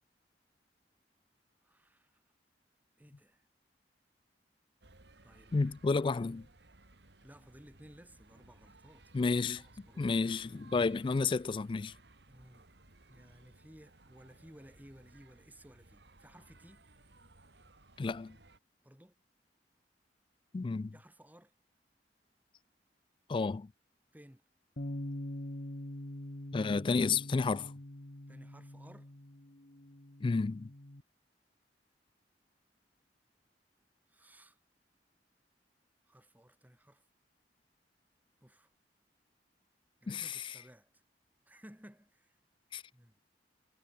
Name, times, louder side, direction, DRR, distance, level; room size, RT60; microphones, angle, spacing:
voice 1, 1.6-2.2 3.0-3.4 5.2-5.5 5.9-6.3 7.2-10.1 12.3-12.7 13.1-16.8 18.8-19.2 20.9-21.5 24.1-24.4 28.3-29.1 34.1-34.6 36.0-37.0 38.4-38.7 40.0-41.0 41.5-42.4 42.9-43.1, equal, 10° right, 6.1 m, -58 dB
sound 1, 4.8-18.6, right 2 dB, 75° right, 3.1 m, -61 dB
voice 2, 5.5-6.4 9.1-9.6 10.0-11.9 18.0-18.4 20.5-20.9 23.3-23.7 26.5-27.7 30.2-30.7 40.1-40.3 42.7-42.8, left 4 dB, 30° left, 0.3 m, -31 dB
Bass guitar, 24.8-31.0, left 1 dB, 55° left, 2.1 m, -44 dB
head